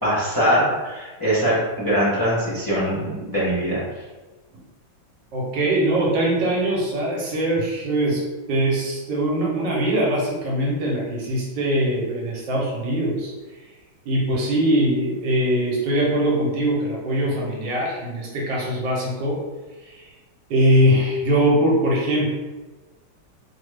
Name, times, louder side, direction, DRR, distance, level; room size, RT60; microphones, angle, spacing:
voice 1, 0.0-3.8, equal, 25° left, -10 dB, 0.4 m, -22 dB
voice 2, 5.3-8.2 8.5-13.6 14.0-19.4 19.8-20.1 20.5-22.3, right 1 dB, 70° right, -4 dB, 1.4 m, -22 dB
3.4 x 2.2 x 3.2 m, 1.2 s
omnidirectional pair, 2.1 m